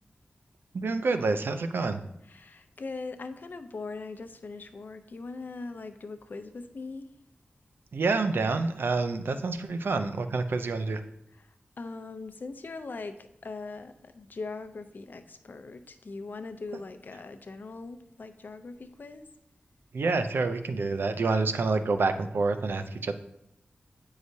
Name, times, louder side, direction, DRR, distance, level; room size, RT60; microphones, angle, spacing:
voice 1, 0.7-2.0 7.9-11.0 19.9-23.1, right 3 dB, 80° right, 8 dB, 0.5 m, -27 dB
voice 2, 2.3-7.1 11.8-13.1 13.4-19.2, left 3 dB, 60° left, 9 dB, 0.5 m, -40 dB
9.1 x 4.8 x 2.7 m, 0.77 s
wide cardioid pair, 95°, 4 cm